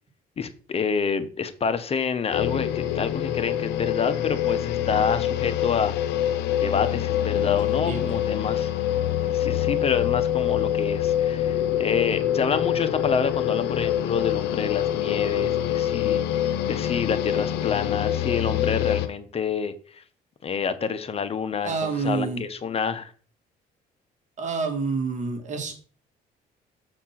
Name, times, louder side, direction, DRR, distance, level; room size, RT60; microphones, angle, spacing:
voice 1, 0.4-5.9 6.6-8.7 9.2-20.0 20.4-23.1, left 6 dB, 35° left, 11 dB, 0.9 m, -28 dB
sound 1, 2.3-19.1, left 11 dB, 85° left, 0.7 m, -25 dB
voice 2, 21.6-22.4 24.4-25.8, right 4 dB, 45° right, 5 dB, 1.7 m, -28 dB
7.5 x 4.4 x 5.8 m, 0.41 s
cardioid pair, 110°, 17 cm